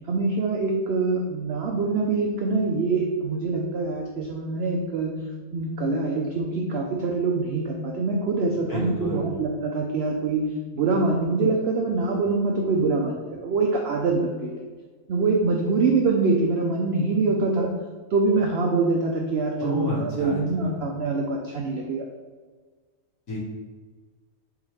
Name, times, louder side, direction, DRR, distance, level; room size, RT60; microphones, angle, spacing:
voice 1, 0.1-5.1 5.5-10.4 10.7-14.5 15.1-17.7 18.1-22.1, right 3 dB, 75° right, 0 dB, 0.5 m, -24 dB
voice 2, 8.7-9.3 19.6-20.7 23.3-23.4, equal, 60° left, -6 dB, 1.8 m, -30 dB
4.0 x 3.6 x 3.1 m, 1.5 s
omnidirectional pair, 1.6 m